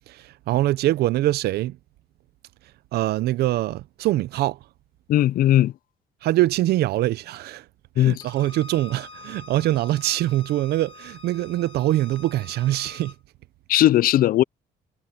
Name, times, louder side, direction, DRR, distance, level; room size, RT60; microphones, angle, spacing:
voice 1, 0.1-1.8 2.9-4.6 6.2-7.7 8.0-13.1, right 15 dB, 70° right, 0.7 m, -23 dB
voice 2, 5.1-5.7 8.0-8.2 13.7-14.4, left 13 dB, 60° left, 0.5 m, -18 dB
Bowed string instrument, 8.2-13.2, left 3 dB, 30° left, 2.3 m, -45 dB
cardioid pair, 110°, 17 cm